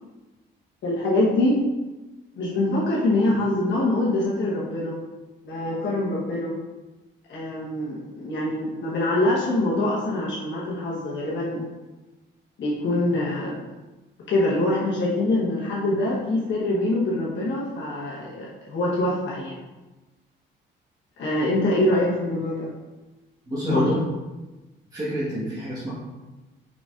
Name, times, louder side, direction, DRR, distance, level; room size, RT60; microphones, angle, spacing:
voice 1, 0.8-1.6 2.3-5.0 5.4-6.5 7.3-11.7 12.6-13.6 14.3-19.6 21.2-22.7 23.7-24.0, left 1 dB, 70° left, -6 dB, 1.0 m, -24 dB
voice 2, 23.4-24.0 24.9-25.9, equal, 20° right, -9 dB, 1.3 m, -28 dB
4.9 x 4.0 x 2.4 m, 1.1 s
cardioid pair, 90°, 20 cm